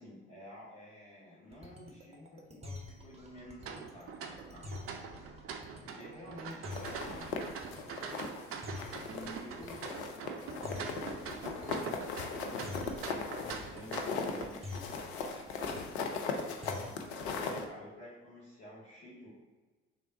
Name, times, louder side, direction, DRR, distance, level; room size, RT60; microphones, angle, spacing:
voice 1, 0.0-5.1 5.8-7.6 8.7-14.8 15.2-19.3, equal, 50° left, -9 dB, 1.1 m, -51 dB
sound 1, 1.5-17.2, left 2 dB, 20° right, 0.8 m, -47 dB
sound 2, 3.6-14.4, right 6 dB, 45° right, 0.5 m, -44 dB
sound 3, 6.7-8.4 8.8-9.4 9.7-17.6, left 4 dB, 75° left, 0.5 m, -38 dB
3.4 x 2.5 x 4.0 m, 1.3 s
figure-of-eight pair, 50°, 33 cm